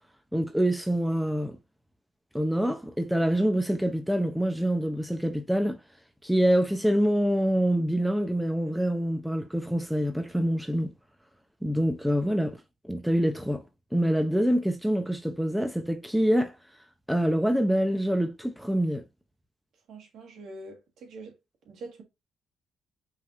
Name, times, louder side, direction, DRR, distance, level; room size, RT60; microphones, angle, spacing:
voice 1, 0.3-1.6 2.3-5.8 6.2-10.9 11.6-12.6 12.9-13.6 13.9-16.5 17.1-19.0, equal, ahead, 0.7 m, -25 dB
voice 2, 19.9-21.4 21.7-22.0, right 2 dB, 70° right, 1.7 m, -44 dB
5.4 x 3.5 x 2.6 m
cardioid pair, 90°, 0 cm